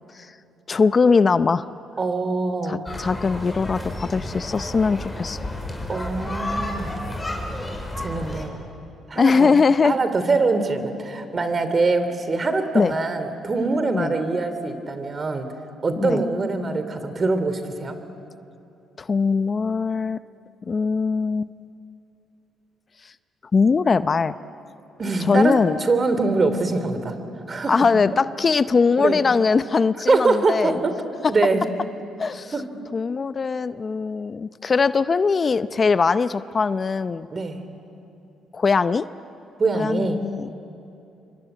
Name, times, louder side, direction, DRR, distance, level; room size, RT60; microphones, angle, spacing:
voice 1, 0.7-1.6 2.7-5.5 9.2-10.0 12.7-12.9 13.9-14.1 16.0-16.2 19.0-20.2 20.7-21.5 23.0-23.1 23.5-24.3 25.2-25.8 27.7-30.8 32.2-32.5 32.9-37.3 38.5-39.1 39.7-40.5, left 5 dB, 40° left, 13 dB, 0.7 m, -21 dB
voice 2, 2.0-2.9 5.9-6.9 8.0-8.6 9.1-9.5 9.8-15.5 15.8-18.0 25.0-27.2 27.5-27.9 29.0-29.2 30.1-30.9 31.3-31.6 32.5-32.6 37.3-37.6 39.6-40.2, right 3 dB, 40° right, 10 dB, 3.2 m, -23 dB
sound 1, 2.9-8.4, left 1 dB, 15° left, 5.7 m, -31 dB
26.0 x 24.5 x 9.2 m, 2.8 s
supercardioid pair, 70°, 0 cm